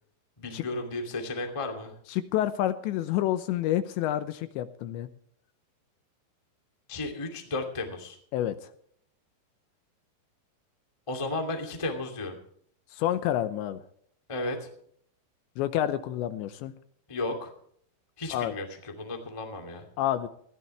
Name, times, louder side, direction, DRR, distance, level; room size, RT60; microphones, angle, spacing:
voice 1, 0.4-1.9 6.9-8.2 11.1-12.3 14.3-14.7 17.1-17.5 18.2-19.9, left 2 dB, 15° left, 3 dB, 1.0 m, -34 dB
voice 2, 2.1-5.1 8.3-8.7 12.9-13.8 15.6-16.7 18.3-18.5 20.0-20.3, left 12 dB, 80° left, 11 dB, 2.9 m, -28 dB
20.5 x 15.0 x 3.3 m, 0.64 s
omnidirectional pair, 5.5 m